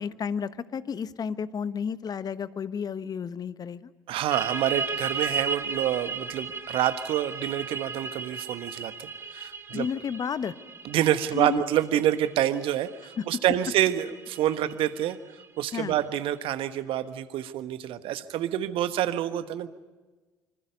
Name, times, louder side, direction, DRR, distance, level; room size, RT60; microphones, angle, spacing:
voice 1, 0.0-3.9 9.7-10.5 11.3-11.6 13.2-13.4 15.7-15.9, left 6 dB, 40° left, 14 dB, 1.1 m, -32 dB
voice 2, 4.1-9.9 10.8-15.2 15.6-19.7, right 12 dB, 55° right, 11 dB, 1.4 m, -27 dB
sound 1, 4.3-15.7, right 4 dB, 25° right, 2.6 m, -35 dB
26.0 x 25.5 x 5.3 m, 1.3 s
figure-of-eight pair, 55°, 11 cm